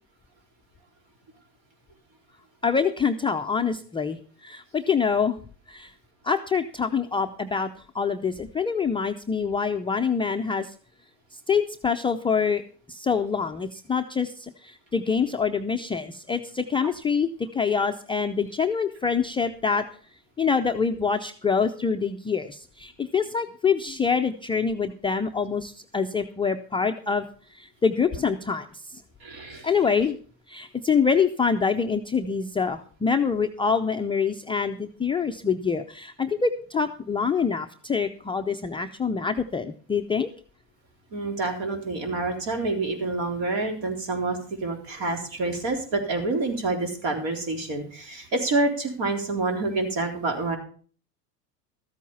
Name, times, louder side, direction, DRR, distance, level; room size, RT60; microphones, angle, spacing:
voice 1, 2.6-5.4 5.7-5.9 6.2-7.7 7.9-10.7 11.5-12.6 12.9-19.8 20.4-27.3 27.5-29.0 29.6-30.2 30.5-40.3, left 5 dB, 10° left, 3 dB, 0.5 m, -25 dB
voice 2, 29.2-29.7 41.1-50.6, right 3 dB, 55° right, 4 dB, 3.9 m, -27 dB
13.5 x 8.3 x 5.5 m, 0.43 s
hypercardioid pair, 95°, 48 cm